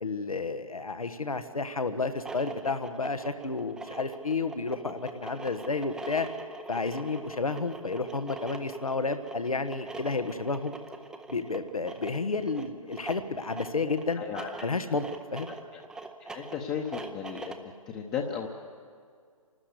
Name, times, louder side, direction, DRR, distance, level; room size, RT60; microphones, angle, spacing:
voice 1, 0.0-6.3 6.7-10.7 11.3-14.2 14.6-15.5, left 4 dB, 85° left, 10 dB, 1.3 m, -31 dB
sound 1, 2.0-17.7, right 3 dB, 5° right, 0.6 m, -43 dB
voice 2, 14.2-14.5 15.7-15.8 16.2-17.5 17.9-18.5, left 7 dB, 20° left, 1 dB, 0.9 m, -34 dB
26.5 x 13.0 x 8.1 m, 2.2 s
figure-of-eight pair, 140°, 18 cm